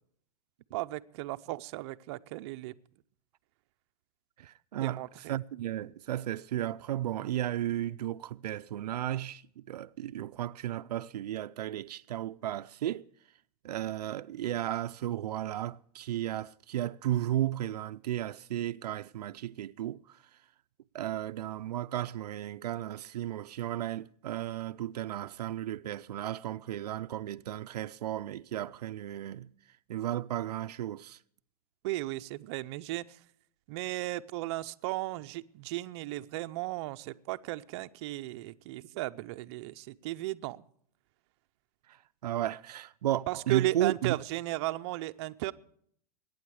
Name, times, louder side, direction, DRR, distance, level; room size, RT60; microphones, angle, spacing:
voice 1, 0.7-2.7 4.7-5.4 31.8-33.2 33.7-40.6 43.3-45.5, right 17 dB, 45° right, 0.6 m, -35 dB
voice 2, 4.4-5.0 5.3-13.0 13.6-20.0 20.9-29.5 29.9-31.2 42.2-44.2, right 12 dB, 85° right, 0.5 m, -34 dB
21.5 x 9.4 x 4.8 m
hypercardioid pair, 145°, 20 cm